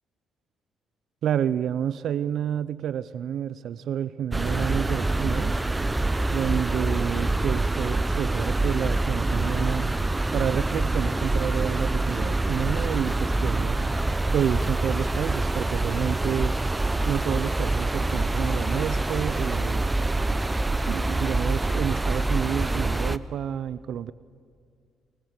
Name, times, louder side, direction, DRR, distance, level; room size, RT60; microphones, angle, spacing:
voice 1, 1.2-5.6 6.3-9.9 10.3-13.8 14.3-16.5 17.1-19.8 20.9-24.1, right 9 dB, 70° right, 17 dB, 0.6 m, -29 dB
sound 1, 4.3-23.2, right 2 dB, 15° right, 0.8 m, -25 dB
sound 2, 10.7-11.0 11.4-11.5 12.1-12.3 12.7-13.0 13.4-13.7 14.0-14.1 14.5-14.8 15.1-15.2 15.5-15.6 15.8-15.9 16.2-19.8, left 3 dB, 65° left, 7.1 m, -57 dB
23.0 x 21.5 x 8.2 m, 2.2 s
cardioid pair, 90°, 0 cm